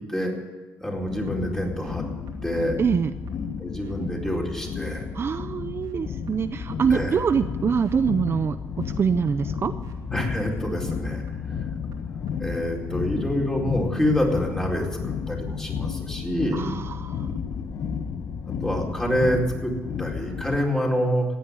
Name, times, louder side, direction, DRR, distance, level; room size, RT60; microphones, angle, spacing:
voice 1, 0.8-2.0 2.4-2.8 3.6-5.1 6.9-7.2 10.1-11.2 12.4-16.7 18.4-19.7 20.0-21.3, equal, 10° left, -1 dB, 4.3 m, -26 dB
sound 1, 0.9-18.2, left 2 dB, 80° right, 2.8 m, -43 dB
sound 2, 1.0-20.6, left 7 dB, 65° left, 1.0 m, -33 dB
voice 2, 2.8-3.1 5.1-9.7 16.5-17.3, right 6 dB, 40° right, 11 dB, 0.6 m, -25 dB
16.0 x 9.3 x 9.8 m, 1.3 s
cardioid pair, 100°, 6 cm